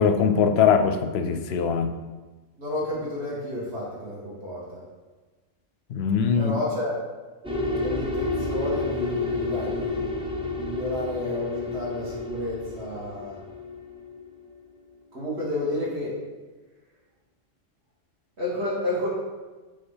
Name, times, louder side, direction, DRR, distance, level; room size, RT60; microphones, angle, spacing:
voice 1, 0.0-1.9 5.9-6.6, left 6 dB, 65° left, 7 dB, 0.7 m, -21 dB
voice 2, 2.6-4.8 6.3-7.0 7.8-10.2 10.6-13.4 15.1-16.2 18.4-19.1, left 1 dB, 55° right, -7 dB, 2.3 m, -31 dB
sound 1, 7.4-14.5, left 3 dB, 5° right, 0.5 m, -30 dB
5.6 x 3.6 x 5.5 m, 1.3 s
omnidirectional pair, 1.3 m